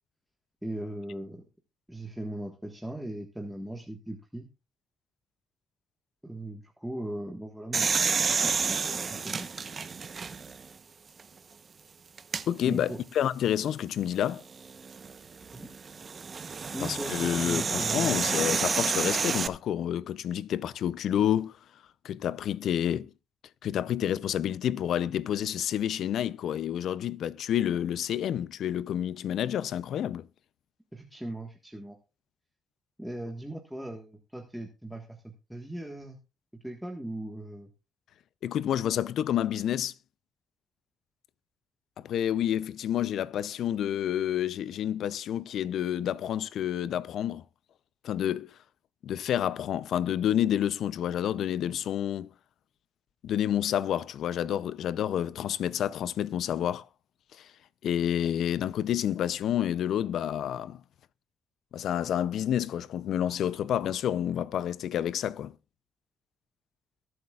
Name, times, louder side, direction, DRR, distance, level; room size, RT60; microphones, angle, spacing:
voice 1, 0.6-1.4 1.9-4.5 6.2-9.5 12.6-13.0 15.5-15.7 16.6-18.2 30.9-32.0 33.0-36.2 36.5-37.7, right 1 dB, 5° right, 1.5 m, -39 dB
sound 1, 7.7-10.6 11.2-11.3 12.2-12.4 14.6-19.5, right 5 dB, 40° right, 0.9 m, -30 dB
voice 2, 12.5-14.4 16.9-21.5 22.0-23.1 23.6-30.3 38.4-39.9 42.0-47.4 48.0-48.5 49.0-52.3 53.2-56.9 57.4-57.5 57.8-60.8 61.7-65.5, left 10 dB, 70° left, 0.6 m, -29 dB
22.5 x 8.0 x 2.4 m
cardioid pair, 90°, 0 cm